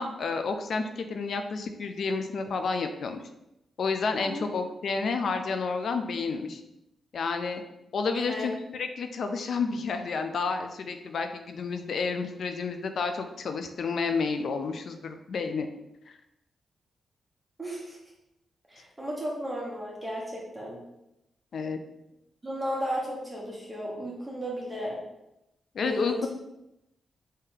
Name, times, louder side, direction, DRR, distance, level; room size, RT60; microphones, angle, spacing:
voice 1, 0.0-3.2 3.8-6.6 7.1-7.6 7.9-15.7 21.5-21.8 25.7-26.3, left 4 dB, 70° left, 7 dB, 0.4 m, -30 dB
voice 2, 8.1-8.5 17.6-18.0 18.7-20.8 22.4-25.0 25.8-26.3, equal, 25° right, -4 dB, 1.1 m, -34 dB
3.4 x 2.7 x 3.6 m, 0.88 s
supercardioid pair, 50°, 0 cm